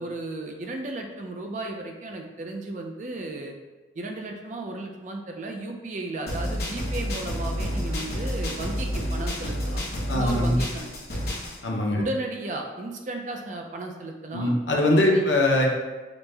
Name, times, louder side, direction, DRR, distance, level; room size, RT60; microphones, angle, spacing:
voice 1, 0.0-3.5 3.9-9.8 10.1-10.9 11.9-14.5 15.1-15.2, right 2 dB, 40° right, 2 dB, 0.4 m, -34 dB
sound 1, 6.3-11.6, equal, 55° left, 0.8 m, -29 dB
voice 2, 10.1-10.6 11.6-12.0 14.3-15.7, left 1 dB, 85° left, -1 dB, 0.7 m, -22 dB
5.0 x 2.1 x 3.3 m, 1.2 s
head